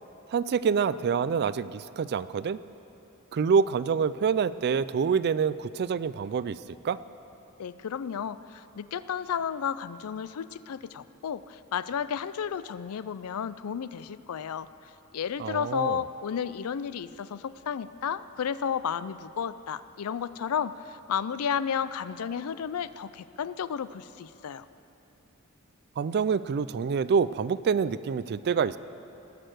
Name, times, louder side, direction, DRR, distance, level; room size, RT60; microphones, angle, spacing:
voice 1, 0.3-2.6 3.3-6.6 6.8-7.0 15.4-16.0 26.0-28.8, right 6 dB, 50° right, 16 dB, 0.3 m, -26 dB
voice 2, 7.6-24.7, left 7 dB, 75° left, 15 dB, 0.4 m, -32 dB
19.5 x 6.6 x 7.8 m, 2.9 s
head